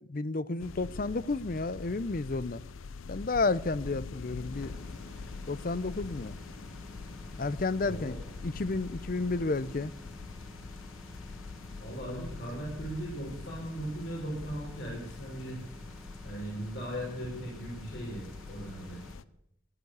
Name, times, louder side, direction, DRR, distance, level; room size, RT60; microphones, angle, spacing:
voice 1, 0.1-2.6 3.1-4.7 5.5-6.3 7.4-8.1 8.4-9.9, left 3 dB, 45° left, 0.6 m, -31 dB
sound 1, 0.6-19.2, left 4 dB, 85° left, 0.6 m, -44 dB
sound 2, 4.5-19.1, equal, ahead, 1.6 m, -50 dB
voice 2, 7.8-8.1 11.8-15.6 16.2-19.0, right 1 dB, 60° left, 5.6 m, -38 dB
16.0 x 11.0 x 8.1 m
head